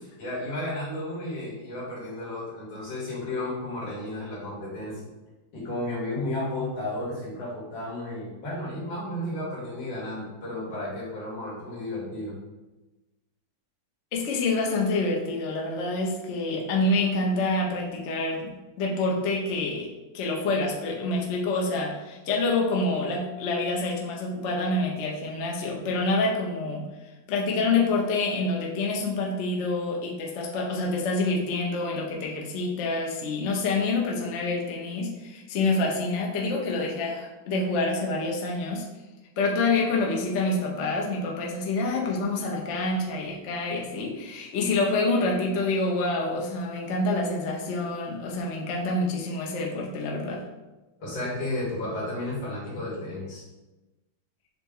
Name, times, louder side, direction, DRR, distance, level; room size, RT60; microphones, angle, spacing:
voice 1, 0.0-5.1 5.5-12.3 51.0-53.4, left 1 dB, 80° left, -7 dB, 2.6 m, -33 dB
voice 2, 14.1-26.9 27.3-38.9 39.4-50.4, left 2 dB, 65° left, -1 dB, 0.7 m, -27 dB
6.5 x 2.2 x 3.6 m, 1.1 s
omnidirectional pair, 2.2 m